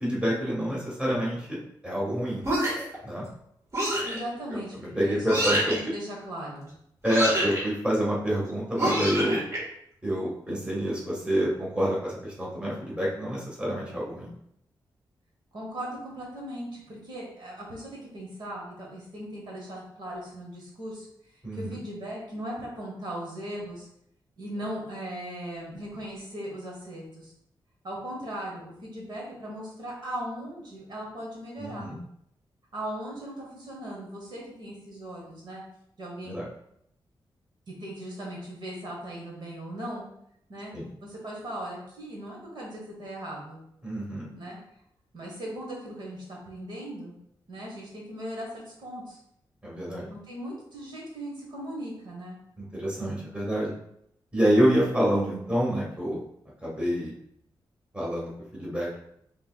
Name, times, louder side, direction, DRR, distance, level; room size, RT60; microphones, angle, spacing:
voice 1, 0.0-1.6 1.8-2.4 3.0-3.3 4.5-5.7 7.0-9.4 10.0-14.3 21.4-21.7 31.6-32.0 36.2-36.5 40.7-40.9 43.8-44.3 49.6-50.1 52.6-53.7 54.3-56.2 56.6-57.1 57.9-59.0, equal, 10° right, -5 dB, 1.5 m, -27 dB
sound 1, 2.4-3.0 3.7-4.2 5.3-5.8 7.0-7.6 8.8-9.6, right 1 dB, 35° right, 1.7 m, -26 dB
voice 2, 4.0-4.7 5.0-6.7 15.5-21.1 21.5-23.9 24.4-27.3 27.8-31.9 32.7-35.6 36.0-36.4 37.8-40.1 40.5-40.7 41.0-43.6 44.3-44.6 45.1-47.1 47.5-49.2 50.1-52.4, right 1 dB, 60° right, -3 dB, 1.3 m, -38 dB
5.4 x 3.3 x 2.3 m, 0.74 s
cardioid pair, 95°, 9 cm